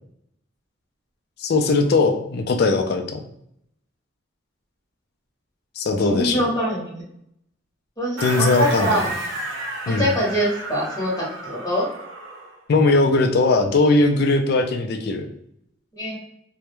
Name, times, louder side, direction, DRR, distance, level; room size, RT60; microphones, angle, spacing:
voice 1, 1.4-3.2 5.8-6.4 8.2-9.0 9.9-10.1 12.7-15.3, left 3 dB, 50° left, 5 dB, 0.3 m, -19 dB
voice 2, 5.9-6.9 8.0-9.1 10.0-11.9 15.9-16.2, equal, 20° left, -6 dB, 0.8 m, -24 dB
sound 1, 8.2-12.6, right 2 dB, 75° right, 0.6 m, -32 dB
2.2 x 2.1 x 2.9 m, 0.74 s
head